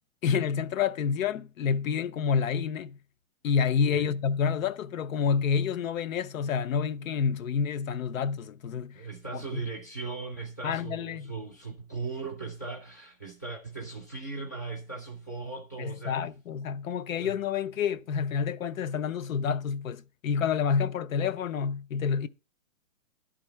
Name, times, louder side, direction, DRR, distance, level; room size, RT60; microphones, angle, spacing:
voice 1, 0.2-3.0 3.4-9.0 9.3-9.6 10.6-11.3 15.8-22.3, left 6 dB, 80° left, 0.6 m, -28 dB
voice 2, 8.9-16.2 17.2-17.3, right 4 dB, 15° left, 0.4 m, -38 dB
10.5 x 3.8 x 5.5 m
hypercardioid pair, 175°, 40 cm